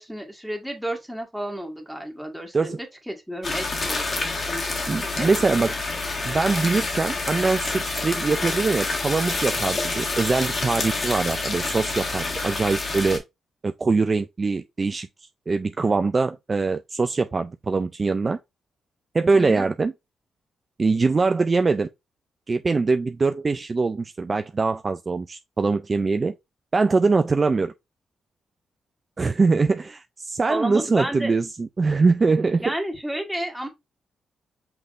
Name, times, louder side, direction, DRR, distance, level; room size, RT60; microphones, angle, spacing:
voice 1, 0.0-4.0 4.3-5.3 19.3-19.7 30.5-31.3 32.6-33.7, right 1 dB, 5° right, 1.8 m, -32 dB
sound 1, 3.4-13.2, left 3 dB, 45° left, 1.6 m, -28 dB
voice 2, 4.9-5.8 6.2-13.2 13.6-15.1 15.5-18.4 19.1-19.9 20.8-21.9 22.5-26.3 26.7-27.7 29.2-32.7, right 4 dB, 40° right, 0.4 m, -23 dB
5.9 x 3.4 x 2.5 m
supercardioid pair, 50°, 0 cm